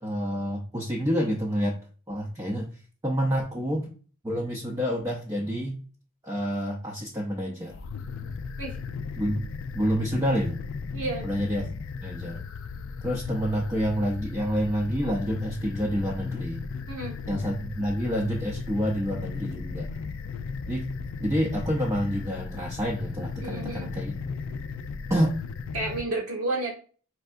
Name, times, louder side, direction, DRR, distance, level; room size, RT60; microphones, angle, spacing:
voice 1, 0.0-1.7 2.1-2.7 3.0-3.9 4.2-5.8 6.2-7.8 9.2-9.5 9.7-10.6 11.2-11.7 12.0-12.4 13.0-16.6 17.3-19.9 20.7-20.9 21.2-24.2 25.1-25.4, equal, 15° right, -2 dB, 0.5 m, -28 dB
sound 1, 7.7-26.0, left 5 dB, 60° left, 0.3 m, -36 dB
voice 2, 10.9-11.3 16.9-17.2 23.4-23.9 25.7-26.7, right 2 dB, 80° right, -2 dB, 1.7 m, -31 dB
4.4 x 3.4 x 2.5 m, 0.39 s
head